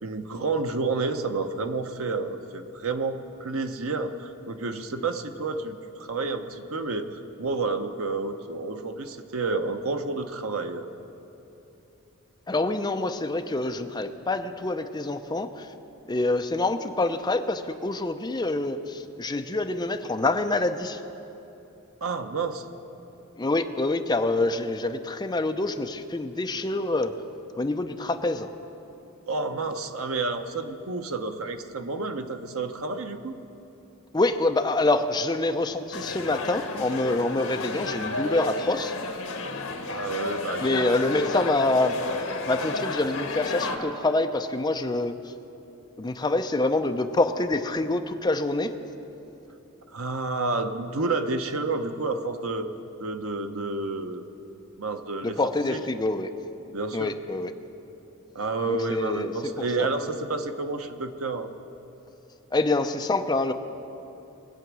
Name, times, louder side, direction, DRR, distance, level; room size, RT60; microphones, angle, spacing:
voice 1, 0.0-10.9 22.0-22.6 29.3-33.4 39.9-41.1 49.9-52.7 53.0-54.2 54.8-55.8 56.7-57.1 58.3-61.5, right 3 dB, 75° right, 7 dB, 0.9 m, -30 dB
voice 2, 12.5-15.7 16.1-21.0 23.4-27.1 27.6-28.5 34.1-38.9 40.6-41.9 42.5-45.2 46.0-48.7 55.2-56.3 56.9-57.5 58.7-59.9 62.5-63.5, left 2 dB, 20° left, 6 dB, 0.5 m, -26 dB
sound 1, 35.9-43.8, left 3 dB, 75° left, 1.4 m, -32 dB
21.5 x 8.1 x 6.1 m, 3.0 s
head